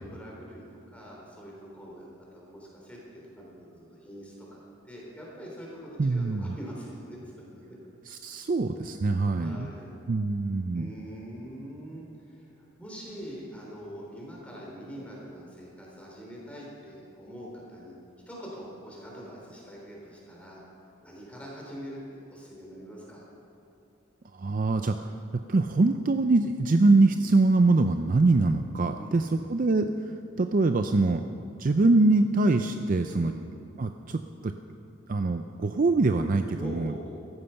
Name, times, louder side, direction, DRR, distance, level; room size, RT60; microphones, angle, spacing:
voice 1, 0.0-7.2 7.5-7.6 9.4-9.9 10.7-18.0 18.3-20.6 21.0-23.3 28.9-29.4 33.1-33.4 36.6-37.2, equal, 5° left, -4 dB, 3.6 m, -43 dB
voice 2, 6.0-6.6 8.1-9.7 10.1-10.9 24.3-31.2 31.6-33.3 33.8-34.5 35.1-36.9, right 3 dB, 40° right, 7 dB, 0.4 m, -24 dB
15.0 x 13.5 x 5.8 m, 2.6 s
head